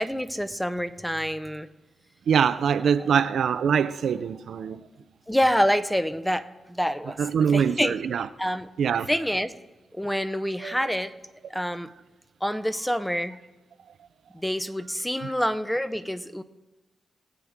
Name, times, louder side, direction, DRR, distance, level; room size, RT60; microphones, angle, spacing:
voice 1, 0.0-1.7 5.3-7.2 7.5-8.0 8.4-8.7 9.1-9.5 9.9-11.1 11.5-11.9 12.4-13.4 14.3-16.4, equal, 5° left, 0.7 m, -27 dB
voice 2, 2.3-4.9 7.2-8.3 8.8-9.1 10.6-10.7 15.2-15.3, right 7 dB, 80° right, 0.5 m, -24 dB
20.0 x 8.1 x 3.6 m
cardioid pair, 80°, 0 cm